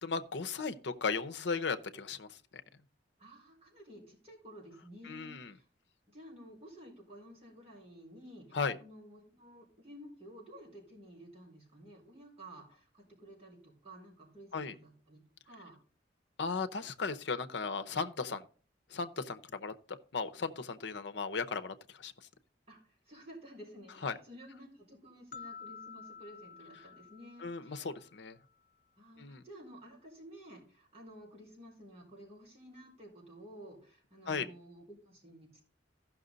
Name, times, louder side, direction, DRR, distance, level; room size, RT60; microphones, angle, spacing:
voice 1, 0.0-2.6 5.0-5.5 8.5-8.8 14.5-14.7 16.4-18.4 18.9-22.1 24.0-24.2 27.4-28.4 29.2-29.4 34.3-34.5, left 4 dB, 70° left, 0.7 m, -36 dB
voice 2, 3.2-5.6 6.1-15.7 22.7-22.8 23.1-27.9 29.0-35.6, equal, 35° right, 4.9 m, -53 dB
sound 1, 25.3-28.4, left 6 dB, 50° left, 0.3 m, -51 dB
14.5 x 6.0 x 3.9 m
head